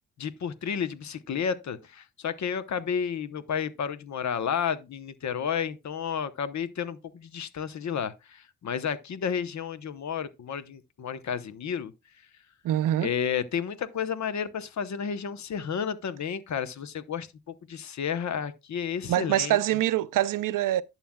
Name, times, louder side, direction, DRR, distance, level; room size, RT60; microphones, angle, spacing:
voice 1, 0.2-11.9 13.0-19.6, left 7 dB, 60° left, 0.9 m, -31 dB
voice 2, 12.6-13.1 19.1-20.8, right 13 dB, 80° right, 0.5 m, -24 dB
11.0 x 7.5 x 2.3 m
cardioid pair, 105°, 32 cm